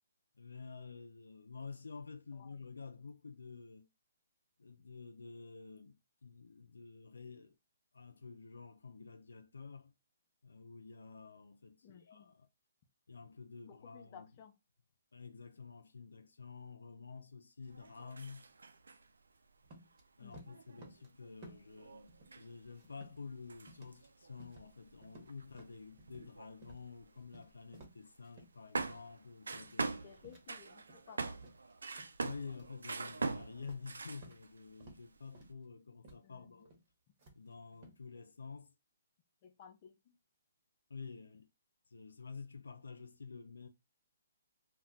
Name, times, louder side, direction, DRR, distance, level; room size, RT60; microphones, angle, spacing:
voice 1, 0.4-3.9 4.6-7.6 7.9-9.9 10.4-12.4 13.1-14.3 15.1-18.5 20.2-22.1 22.4-30.1 32.2-36.8 37.4-38.7 40.9-41.5 41.9-43.7, left 4 dB, 85° left, 0.3 m, -50 dB
voice 2, 2.3-2.7 11.8-12.3 13.6-14.6 20.2-20.6 30.0-31.4 36.2-36.6 39.4-40.1, left 8 dB, 40° left, 0.5 m, -57 dB
sound 1, 17.7-19.1 19.6-19.7 20.0-20.1 20.5-27.7 28.1-28.2 28.7-34.6 34.9-35.5, right 3 dB, 85° right, 0.4 m, -44 dB
sound 2, 19.6-20.0 20.3-21.1 21.4-21.8 22.1-23.3 23.7-24.1 24.4-24.8 25.0-26.3 26.6-26.8 27.1-28.5 28.9-29.2 29.5-29.9 30.2-31.1 31.4-32.1 32.5-32.8 33.1-34.4 34.8-35.1 35.3-35.6 36.0-36.2 36.6-36.8 37.2-38.0, right 2 dB, 35° right, 1.1 m, -58 dB
2.2 x 2.1 x 3.8 m
hypercardioid pair, 145°, 0 cm